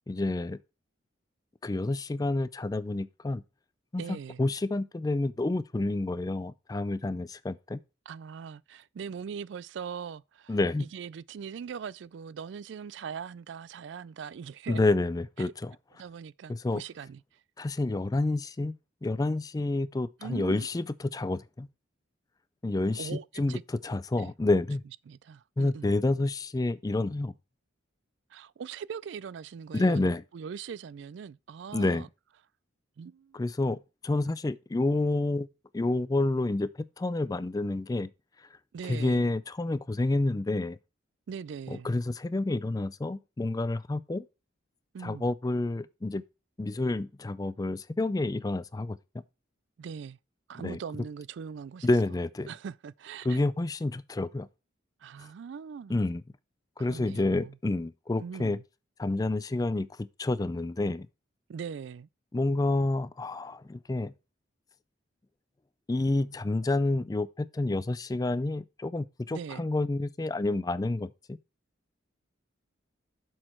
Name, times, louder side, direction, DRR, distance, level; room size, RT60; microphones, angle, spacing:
voice 1, 0.1-0.6 1.6-3.4 3.9-7.8 10.5-10.8 14.7-15.7 16.5-16.8 17.6-18.7 19.0-21.7 22.6-23.6 23.8-24.8 25.6-27.3 29.7-30.2 31.7-32.1 33.3-35.5 35.7-36.7 37.0-38.1 38.9-40.8 41.7-44.2 45.0-46.2 46.6-49.0 50.6-50.8 51.8-52.5 53.2-54.5 55.9-56.2 56.8-58.6 59.0-61.1 62.3-64.1 65.9-71.4, left 2 dB, 20° left, 0.3 m, -29 dB
voice 2, 4.0-4.4 8.1-14.8 15.4-15.5 16.0-17.4 20.2-20.7 23.0-23.6 24.2-24.3 25.1-25.9 28.3-30.0 30.3-32.1 33.0-33.4 38.7-39.3 41.3-41.9 44.9-45.2 49.8-50.2 50.5-51.9 52.5-53.4 55.0-56.0 56.8-57.5 58.2-58.6 61.5-62.1 69.3-69.6, right 6 dB, 65° right, 0.3 m, -41 dB
7.6 x 6.3 x 4.4 m
head